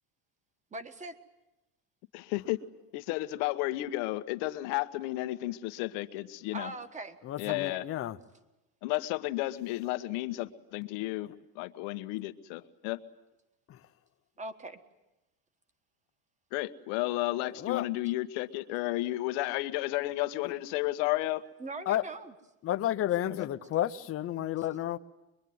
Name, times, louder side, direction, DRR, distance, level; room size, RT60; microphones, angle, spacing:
voice 1, 0.7-1.2 6.5-7.2 7.4-7.8 14.4-14.8 21.6-22.3 24.6-24.7, right 2 dB, 15° right, 1.5 m, -41 dB
voice 2, 2.1-2.6 2.9-6.7 7.4-7.8 8.8-11.3 11.5-13.0 16.5-21.4 23.3-23.5, left 18 dB, 90° left, 1.4 m, -32 dB
voice 3, 7.3-8.2 13.7-13.8 17.6-17.9 20.4-20.5 21.9-22.0 22.6-25.0, left 12 dB, 30° left, 0.9 m, -31 dB
24.0 x 23.5 x 9.5 m
cardioid pair, 165°, 44 cm